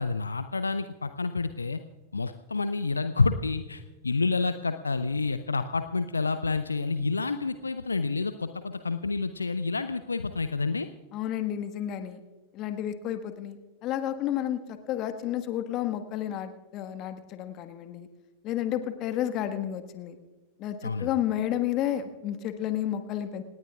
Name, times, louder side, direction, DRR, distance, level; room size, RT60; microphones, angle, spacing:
voice 1, 0.0-1.8 2.1-10.9 20.8-21.1, left 4 dB, 80° left, 10 dB, 0.6 m, -29 dB
voice 2, 11.1-12.2 12.5-18.1 18.4-20.2 20.6-23.4, left 11 dB, 35° left, 9 dB, 1.5 m, -31 dB
27.0 x 19.5 x 2.4 m, 1.2 s
figure-of-eight pair, 90°, 0 cm